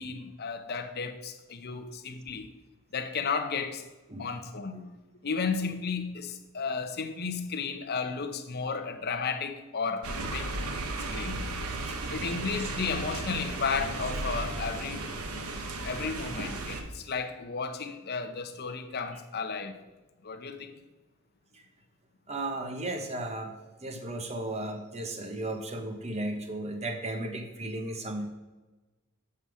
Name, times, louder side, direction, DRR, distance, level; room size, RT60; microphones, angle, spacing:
voice 1, 0.0-2.5 2.9-3.8 4.2-4.9 5.2-10.5 11.1-11.5 12.1-15.1 15.8-19.8 20.2-20.7, left 5 dB, 45° left, 0.7 m, -33 dB
sound 1, 10.0-16.8, right 2 dB, 85° right, 1.0 m, -35 dB
voice 2, 22.3-28.3, right 1 dB, 30° right, 1.0 m, -35 dB
7.8 x 5.6 x 4.8 m
head